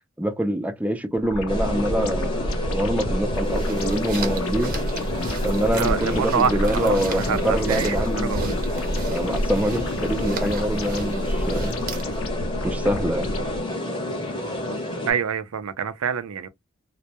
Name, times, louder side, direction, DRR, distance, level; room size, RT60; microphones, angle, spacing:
voice 1, 0.2-4.8 5.4-8.6 9.1-11.8 12.6-13.3, equal, 5° right, 0.4 m, -25 dB
sound 1, 1.2-13.6, equal, 75° left, 0.6 m, -29 dB
sound 2, 1.5-15.1, left 1 dB, 20° left, 0.8 m, -30 dB
sound 3, 3.2-12.3, right 1 dB, 45° right, 0.7 m, -34 dB
voice 2, 5.8-8.5 15.0-16.5, right 7 dB, 80° right, 0.4 m, -26 dB
2.2 x 2.1 x 2.7 m
head